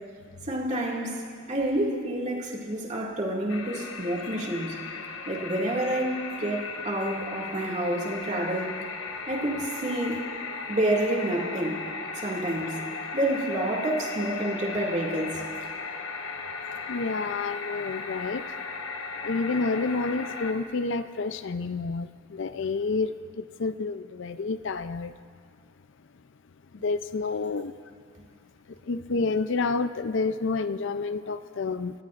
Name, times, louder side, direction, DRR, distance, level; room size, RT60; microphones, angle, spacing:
voice 1, 0.5-4.8 5.3-8.7 9.3-10.2 10.7-11.8 12.2-12.8 13.1-15.4, right 1 dB, 35° right, -2 dB, 2.2 m, -28 dB
sound 1, 3.5-20.5, left 4 dB, 75° left, 1.2 m, -36 dB
voice 2, 16.9-18.4 19.2-23.1 23.6-25.1 26.8-27.7 28.9-31.9, left 4 dB, 60° left, 11 dB, 0.5 m, -29 dB
29.5 x 16.5 x 2.5 m, 2.2 s
head